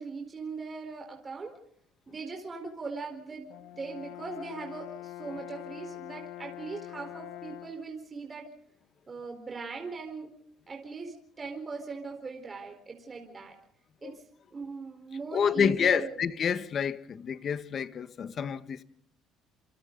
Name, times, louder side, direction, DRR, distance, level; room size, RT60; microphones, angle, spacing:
voice 1, 0.0-1.6 2.1-8.5 9.1-10.3 10.7-13.5 14.0-14.2 14.5-16.2, right 4 dB, 25° right, 4.4 m, -40 dB
Brass instrument, 3.5-7.9, left 14 dB, 85° left, 1.3 m, -44 dB
voice 2, 15.3-18.8, left 7 dB, 45° left, 1.4 m, -28 dB
28.5 x 28.0 x 4.0 m
cardioid pair, 115°, 0 cm